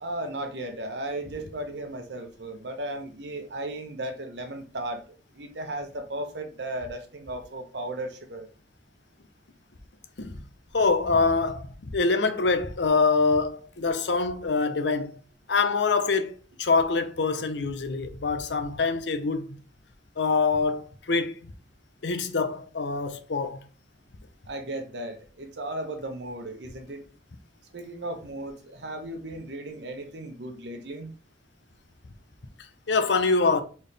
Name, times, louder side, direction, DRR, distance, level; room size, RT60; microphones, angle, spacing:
voice 1, 0.0-5.0 5.3-8.5 24.5-27.0 27.7-31.2, right 1 dB, 75° right, 1.0 m, -35 dB
voice 2, 10.7-15.2 15.5-16.3 16.6-19.6 20.2-21.3 22.0-23.6 32.9-33.6, left 4 dB, 85° left, 0.7 m, -25 dB
4.4 x 3.6 x 3.2 m
head